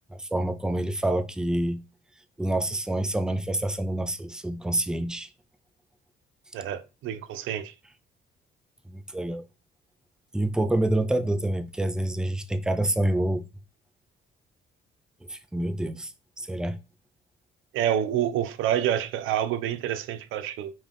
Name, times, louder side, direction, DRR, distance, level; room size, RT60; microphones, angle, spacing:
voice 1, 0.1-1.8 2.4-5.3 8.9-9.4 10.3-13.4 15.3-16.8, right 1 dB, 5° right, 0.4 m, -27 dB
voice 2, 6.5-7.7 17.7-20.7, right 10 dB, 90° right, 0.4 m, -28 dB
5.4 x 2.4 x 3.4 m
cardioid pair, 90°, 20 cm